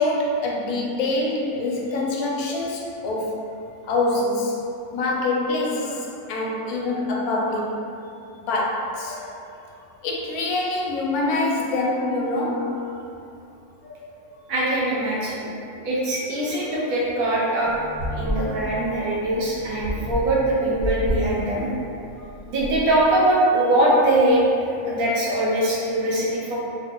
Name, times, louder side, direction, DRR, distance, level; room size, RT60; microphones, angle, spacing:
voice 1, 0.0-3.4 3.8-4.6 4.9-7.8 8.3-9.4 10.0-12.9 13.8-14.1 16.4-16.9 17.3-17.5 17.8-17.9 18.2-19.3 19.8-20.2 21.4-21.5 24.9-25.0, left 2 dB, 90° left, -2 dB, 1.1 m, -26 dB
voice 2, 14.5-15.5 15.8-17.7 18.1-21.7 22.5-24.4 24.9-26.6, right 1 dB, 80° right, -6 dB, 1.2 m, -22 dB
sound 1, 17.6-23.0, equal, 10° left, 0.7 m, -31 dB
3.2 x 2.2 x 3.6 m, 2.6 s
omnidirectional pair, 1.5 m